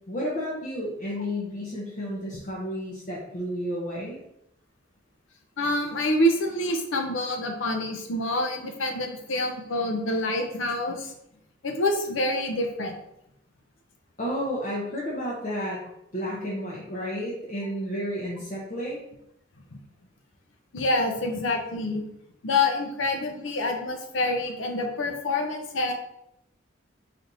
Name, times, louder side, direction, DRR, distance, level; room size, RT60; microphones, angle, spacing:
voice 1, 0.1-4.2 14.2-15.8 16.1-19.0, equal, 40° left, -5 dB, 0.7 m, -31 dB
voice 2, 5.6-11.1 11.6-13.0 20.7-22.0 22.4-25.9, left 1 dB, 80° left, 3 dB, 0.7 m, -27 dB
4.1 x 3.3 x 2.6 m, 0.80 s
head